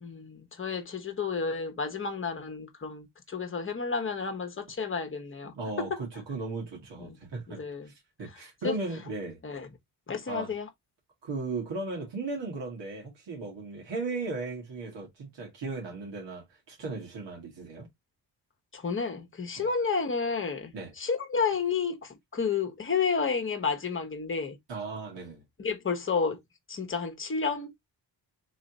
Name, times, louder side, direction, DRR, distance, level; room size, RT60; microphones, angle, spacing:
voice 1, 0.0-5.9 7.0-7.2 7.5-7.9 8.6-8.7 9.4-9.7 10.1-10.7 18.7-24.6 25.6-26.4 26.7-27.9, left 5 dB, 30° left, 1.2 m, -31 dB
voice 2, 5.4-7.6 7.8-9.4 10.3-10.5 11.2-17.9 19.6-19.7 20.7-20.9 24.7-25.4, right 3 dB, 80° right, 2.1 m, -36 dB
4.0 x 3.0 x 4.0 m
wide cardioid pair, 125°, 43 cm